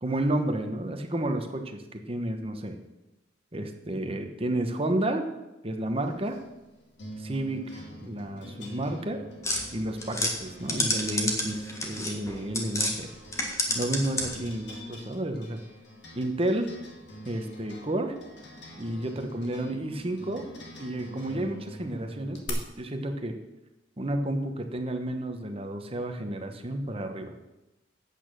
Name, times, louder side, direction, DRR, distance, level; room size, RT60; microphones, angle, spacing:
voice 1, 0.0-2.8 3.5-5.2 5.6-6.3 7.2-9.2 9.7-13.1 13.7-15.6 16.2-16.7 17.3-18.1 18.8-20.4 20.8-23.3 24.0-27.3, right 1 dB, 30° right, 5 dB, 1.1 m, -31 dB
sound 1, 6.0-22.5, equal, 65° left, 2.1 m, -45 dB
sound 2, 9.4-12.9 13.3-14.5, left 1 dB, 15° left, 1.5 m, -30 dB
8.9 x 8.6 x 6.2 m, 0.99 s
head